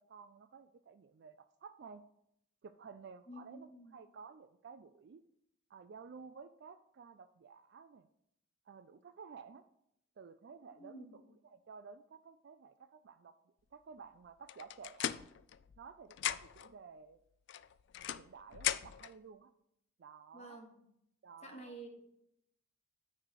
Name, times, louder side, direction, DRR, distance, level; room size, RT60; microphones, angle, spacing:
voice 1, 0.1-2.0 2.6-5.2 5.7-8.1 8.7-9.6 10.2-13.3 13.7-15.3 15.8-17.2 18.2-19.5 20.0-20.6 21.2-21.7, right 5 dB, 55° right, 11 dB, 0.3 m, -54 dB
voice 2, 3.3-3.9 10.8-11.2 20.3-20.9 21.4-22.0, right 1 dB, 30° left, 2 dB, 1.4 m, -50 dB
sound 1, 14.5-15.9 16.1-16.7 17.5-19.1, left 11 dB, 60° left, 0.3 m, -38 dB
9.5 x 3.3 x 6.6 m, 0.77 s
head